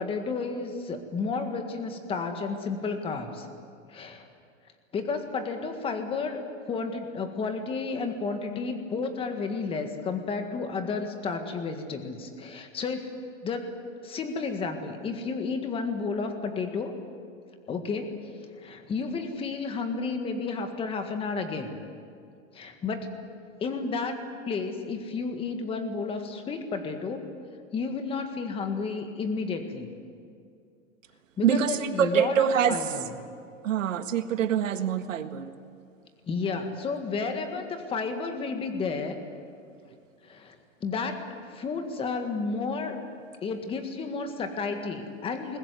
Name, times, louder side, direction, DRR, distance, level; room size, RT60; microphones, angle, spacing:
voice 1, 0.0-3.5 3.9-4.3 4.9-17.0 17.7-18.2 18.6-21.8 22.5-23.1 23.6-24.2 24.5-27.2 27.7-29.9 31.4-33.2 36.3-39.2 40.2-41.2 41.5-43.0 43.4-45.6, left 4 dB, 15° left, 6 dB, 1.7 m, -32 dB
voice 2, 31.4-32.8 33.6-35.5, right 8 dB, 70° right, 9 dB, 1.7 m, -25 dB
21.0 x 21.0 x 9.5 m, 2.3 s
hypercardioid pair, 155°, 39 cm